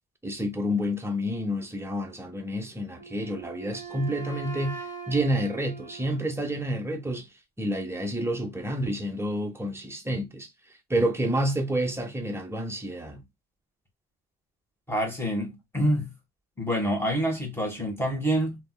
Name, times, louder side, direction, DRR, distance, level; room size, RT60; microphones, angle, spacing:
voice 1, 0.2-7.3 7.6-10.5 10.9-13.2, equal, 10° right, 0.9 m, -29 dB
Wind instrument woodwind instrument, 3.0-6.9, right 6 dB, 25° right, 1.3 m, -41 dB
voice 2, 14.9-16.1 16.6-18.6, equal, 10° left, 1.8 m, -27 dB
3.4 x 2.9 x 2.3 m
cardioid pair, 90°, 30 cm